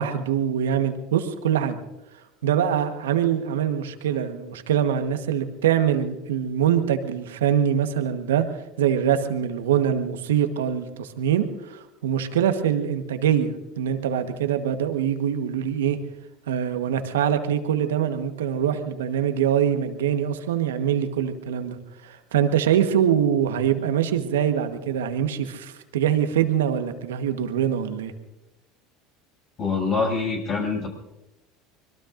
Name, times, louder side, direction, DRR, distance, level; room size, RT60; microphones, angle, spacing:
voice 1, 0.0-1.8 2.4-8.5 8.8-16.0 16.5-21.8 22.0-28.1, right 9 dB, 85° right, 8 dB, 1.3 m, -24 dB
voice 2, 29.6-30.9, left 4 dB, 45° left, 1 dB, 6.7 m, -25 dB
25.5 x 21.5 x 2.6 m, 0.95 s
hypercardioid pair, 80°, 0 cm